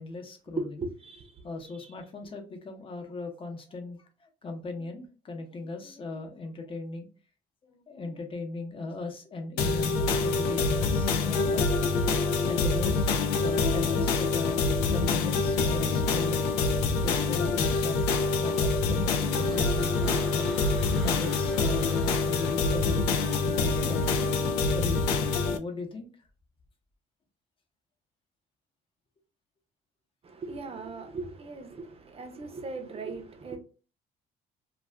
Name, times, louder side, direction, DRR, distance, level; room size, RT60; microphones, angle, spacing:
voice 1, 0.0-0.7 1.4-7.1 7.7-11.6 12.5-13.1 13.3-16.4 16.9-20.6 21.0-24.3 24.7-26.1, left 3 dB, 30° left, 0.8 m, -38 dB
voice 2, 0.6-1.3 1.8-1.9 30.2-33.6, right 3 dB, 35° right, 0.6 m, -38 dB
sound 1, 9.6-25.6, left 4 dB, 90° left, 0.4 m, -26 dB
sound 2, 19.2-23.2, equal, ahead, 0.7 m, -48 dB
Wind instrument woodwind instrument, 19.2-24.9, right 7 dB, 80° right, 0.5 m, -43 dB
2.4 x 2.3 x 3.3 m
cardioid pair, 110°, 17 cm